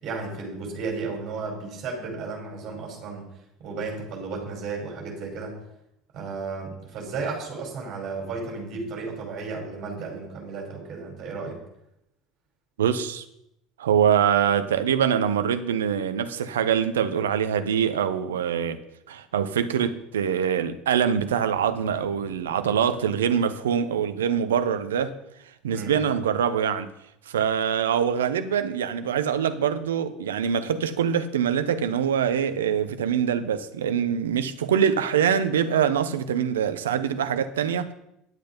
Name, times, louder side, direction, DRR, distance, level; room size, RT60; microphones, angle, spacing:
voice 1, 0.0-3.2 3.6-5.6 6.1-11.6 25.7-26.1, right 4 dB, 45° right, 5.1 m, -34 dB
voice 2, 12.8-13.2 13.8-18.8 19.1-25.2 25.6-26.9 27.3-37.9, right 8 dB, 75° right, 0.8 m, -24 dB
11.0 x 7.8 x 5.3 m
figure-of-eight pair, 70°, 0 cm